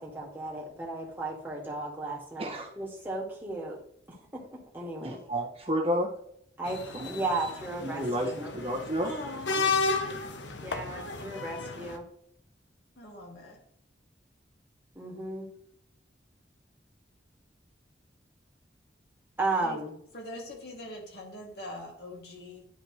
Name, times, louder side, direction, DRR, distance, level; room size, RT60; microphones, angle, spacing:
voice 1, 0.0-3.8 4.3-5.2 6.6-8.5 10.6-12.1 15.0-15.5 19.4-19.9, right 2 dB, 10° right, -4 dB, 2.0 m, -35 dB
voice 2, 2.4-2.7 5.0-6.1 6.9-7.1 7.8-9.1, equal, 35° right, -1 dB, 1.6 m, -31 dB
sound 1, 6.7-12.0, left 4 dB, 85° left, 0.9 m, -33 dB
voice 3, 9.0-9.8 13.0-13.6 19.6-19.8 20.1-22.7, left 1 dB, 60° left, -1 dB, 2.5 m, -42 dB
11.0 x 5.1 x 3.2 m, 0.70 s
head